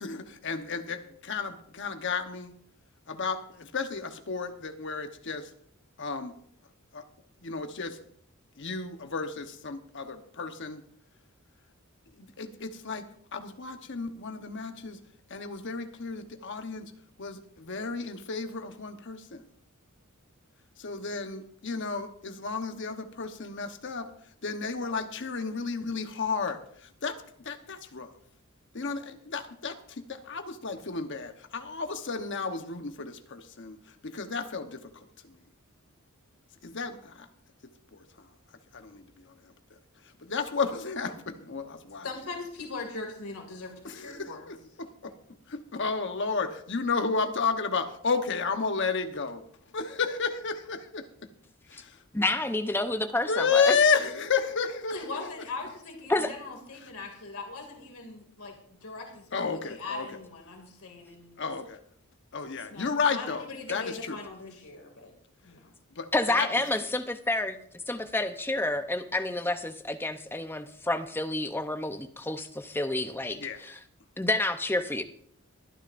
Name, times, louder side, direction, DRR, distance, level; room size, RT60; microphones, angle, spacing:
voice 1, 0.0-2.5 3.1-5.5 6.0-6.3 6.9-7.0 7.4-8.0 8.6-10.8 12.2-13.0 13.3-15.0 15.3-16.9 17.2-19.4 20.8-24.0 24.4-28.1 28.7-33.8 34.0-34.9 35.2-35.4 36.6-37.3 37.9-38.3 38.7-39.3 40.2-42.1 43.8-45.1 45.5-49.4 49.7-51.1 51.7-52.2 53.2-55.1 59.3-60.1 61.4-61.8 62.3-64.2 66.0-66.5 73.4-73.6, left 5 dB, 55° left, 7 dB, 1.1 m, -32 dB
voice 2, 42.0-44.5 54.9-58.6 58.8-61.4 62.7-65.1 65.4-65.7, left 3 dB, 85° left, 2 dB, 2.5 m, -40 dB
voice 3, 52.1-53.7 56.1-56.3 66.1-67.6 67.9-73.8 74.2-75.0, left 2 dB, 10° left, 8 dB, 0.7 m, -29 dB
23.0 x 10.0 x 2.6 m, 0.63 s
head